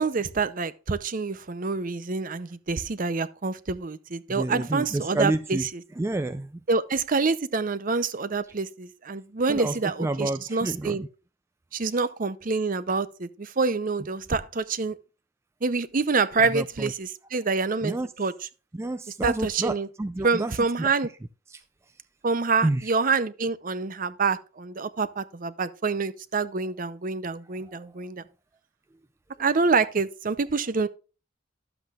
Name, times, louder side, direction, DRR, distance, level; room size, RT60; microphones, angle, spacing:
voice 1, 0.0-5.8 6.7-11.0 11.7-15.0 15.6-18.3 19.2-19.9 20.2-21.1 22.2-28.2 29.4-30.9, right 4 dB, 45° right, 0.6 m, -27 dB
voice 2, 4.3-5.6 6.0-6.5 9.5-11.1 16.4-16.9 17.8-18.1 18.7-20.9 21.5-21.6 22.6-22.9 27.7-27.8, right 2 dB, 15° right, 0.3 m, -29 dB
12.0 x 7.9 x 2.4 m
head